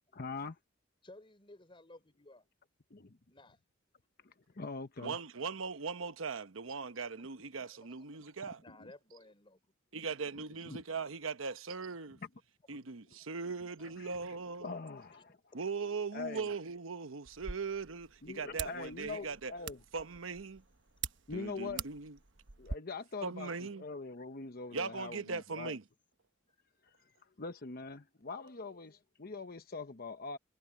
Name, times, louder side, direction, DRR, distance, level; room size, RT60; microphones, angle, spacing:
voice 1, 0.1-0.6 2.9-3.2 4.2-5.2 10.6-10.8 14.0-14.1 14.6-15.4 16.1-16.5 18.2-19.8 21.3-21.9 22.6-25.7 27.2-30.4, left 4 dB, 50° left, 0.9 m, -43 dB
voice 2, 1.0-2.5 3.3-3.6 7.0-7.2 7.6-8.1 8.6-9.6 13.8-13.9 15.1-15.4, left 2 dB, 25° left, 4.0 m, -57 dB
voice 3, 5.0-8.6 9.9-12.2 12.7-14.8 15.5-19.5 19.9-20.6 21.3-22.2 23.2-23.8 24.7-25.8, right 5 dB, 90° right, 1.0 m, -39 dB
sound 1, 17.2-22.8, right 6 dB, 65° right, 1.2 m, -45 dB
head